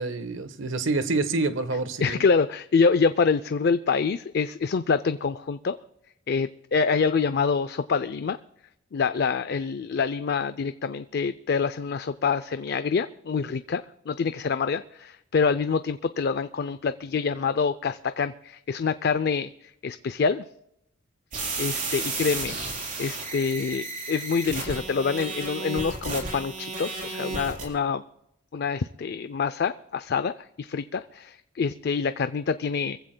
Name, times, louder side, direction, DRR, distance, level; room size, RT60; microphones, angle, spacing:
voice 1, 0.0-2.2, right 3 dB, 75° right, 1.1 m, -27 dB
voice 2, 2.0-5.8 6.3-8.4 8.9-20.4 21.6-22.6 23.0-28.0 28.5-33.0, left 5 dB, 55° left, 0.4 m, -26 dB
sound 1, 21.3-27.6, right 3 dB, 45° right, 4.4 m, -33 dB
25.0 x 15.5 x 2.2 m
head